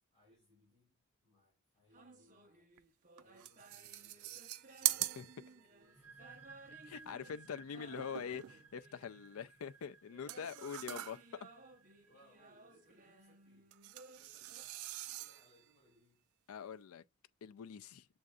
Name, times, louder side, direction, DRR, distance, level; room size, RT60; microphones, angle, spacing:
voice 1, 0.0-2.7 3.2-6.9 12.0-13.7 14.1-16.2, left 1 dB, 30° left, 2.7 m, -70 dB
sound 1, 1.9-9.5 10.1-14.6, right 3 dB, 40° right, 0.9 m, -60 dB
sound 2, 2.8-2.9 3.2-5.9 7.8-8.8 10.3-11.4 13.7-15.6, right 15 dB, 80° right, 0.3 m, -42 dB
sound 3, 5.8-13.3, right 4 dB, 10° right, 1.0 m, -60 dB
voice 2, 6.8-11.5 16.5-17.0 17.4-18.1, left 7 dB, 75° left, 0.4 m, -44 dB
7.4 x 2.6 x 2.3 m
head